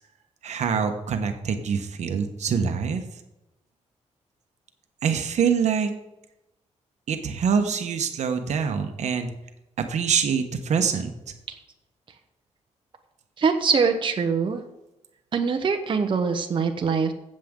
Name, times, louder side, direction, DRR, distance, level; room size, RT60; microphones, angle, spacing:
voice 1, 0.4-3.0 5.0-5.9 7.1-9.3 9.8-11.1, right 6 dB, 75° right, 7 dB, 1.2 m, -25 dB
voice 2, 13.4-14.6 15.3-17.1, right 5 dB, 45° right, 5 dB, 1.0 m, -23 dB
15.0 x 7.6 x 3.8 m, 0.95 s
wide cardioid pair, 125°, 12 cm